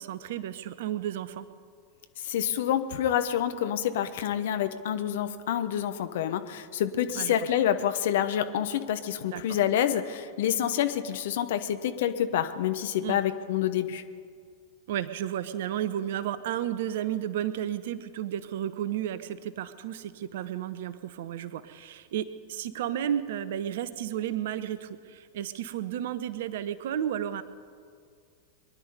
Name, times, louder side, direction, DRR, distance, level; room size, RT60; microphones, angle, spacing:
voice 1, 0.0-1.5 7.1-7.3 9.3-9.6 13.0-13.2 14.9-27.4, right 10 dB, 55° right, 14 dB, 0.8 m, -32 dB
voice 2, 2.2-14.0, left 10 dB, 55° left, 10 dB, 0.9 m, -27 dB
23.0 x 10.5 x 5.4 m, 2.1 s
figure-of-eight pair, 90°, 0 cm